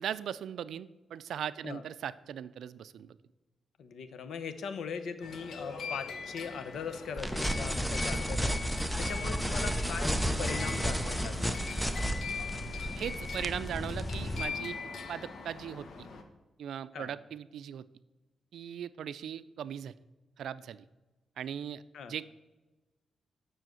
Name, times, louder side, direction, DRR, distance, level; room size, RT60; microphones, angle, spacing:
voice 1, 0.0-3.2 13.0-14.8 15.1-16.1 16.6-17.9 18.5-19.9 20.4-20.8 21.4-21.8 22.1-22.3, right 9 dB, 85° right, 16 dB, 0.4 m, -39 dB
voice 2, 3.8-11.6 16.9-17.1 21.9-22.1, left 6 dB, 80° left, 10 dB, 0.8 m, -40 dB
sound 1, 5.2-16.2, left 4 dB, 65° left, 1.1 m, -41 dB
sound 2, 7.2-14.4, equal, ahead, 0.6 m, -32 dB
7.5 x 6.3 x 7.7 m, 1.1 s
wide cardioid pair, 120°, 0 cm